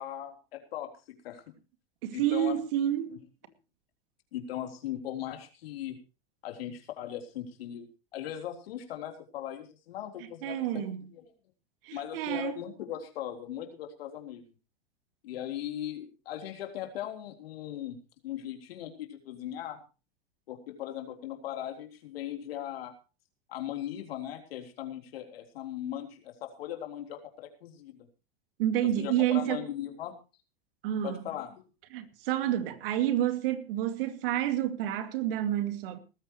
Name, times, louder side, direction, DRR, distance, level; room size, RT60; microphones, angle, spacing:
voice 1, 0.0-1.5 2.1-2.6 3.1-3.2 4.3-6.0 6.4-7.9 8.1-10.9 11.1-11.3 11.9-14.4 15.2-18.0 18.2-19.8 20.5-22.9 23.5-28.1 28.8-30.1 31.0-31.7, left 11 dB, 70° left, 3.8 m, -39 dB
voice 2, 2.0-3.1 10.4-11.0 11.8-12.6 28.6-29.7 30.8-31.2 31.9-36.0, right 12 dB, 65° right, 2.4 m, -29 dB
19.5 x 14.5 x 3.1 m
hypercardioid pair, 100°, 30 cm